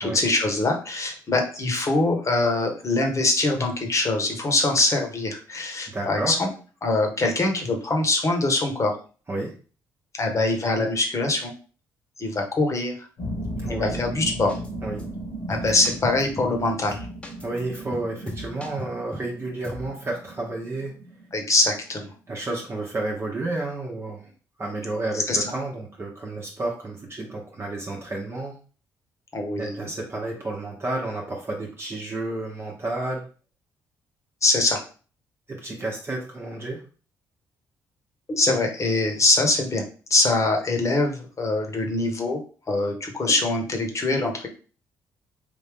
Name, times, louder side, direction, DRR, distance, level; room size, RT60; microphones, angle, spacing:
voice 1, 0.0-6.5 6.8-8.9 10.1-11.5 12.2-13.1 13.7-14.6 15.5-17.0 21.3-22.1 25.1-25.5 29.3-29.9 34.4-34.8 38.3-39.8 40.1-42.4 42.7-44.5, left 2 dB, 40° left, 3 dB, 1.1 m, -23 dB
voice 2, 5.9-6.4 9.3-9.5 13.6-14.0 14.8-15.0 17.4-20.9 22.3-24.3 24.6-28.6 29.6-33.2 35.5-36.8, right 2 dB, 30° right, -1 dB, 0.9 m, -31 dB
sound 1, 13.2-22.1, right 1 dB, 70° left, 1.4 m, -36 dB
sound 2, 14.5-14.7 15.0-15.1 15.5-16.6 16.9-19.3 19.6-19.9, left 1 dB, 15° left, 0.9 m, -38 dB
3.4 x 2.7 x 3.5 m, 0.38 s
supercardioid pair, 55°, 8 cm